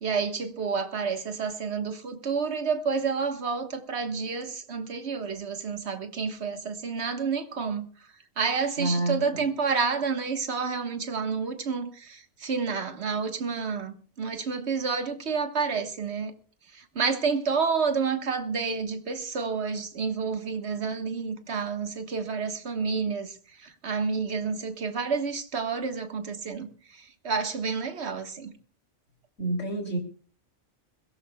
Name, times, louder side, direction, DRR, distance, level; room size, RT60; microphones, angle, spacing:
voice 1, 0.0-8.1 8.4-16.3 16.7-28.5, right 5 dB, 65° right, 1.7 m, -29 dB
voice 2, 8.8-9.4 29.4-30.0, right 2 dB, 85° left, 3.4 m, -28 dB
21.5 x 17.0 x 2.3 m
omnidirectional pair, 1.2 m